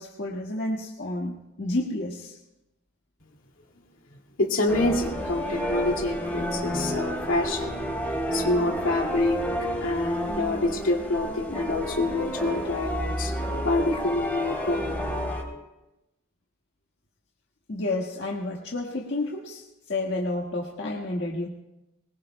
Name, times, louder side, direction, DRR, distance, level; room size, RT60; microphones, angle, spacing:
voice 1, 0.0-2.4 17.7-21.5, left 2 dB, 60° left, -2 dB, 1.6 m, -30 dB
voice 2, 4.4-7.8 8.0-9.4 9.8-15.1, left 2 dB, 75° left, 1 dB, 2.3 m, -27 dB
sound 1, 4.7-15.4, equal, 10° left, 3.2 m, -30 dB
24.0 x 21.0 x 2.2 m, 0.95 s
head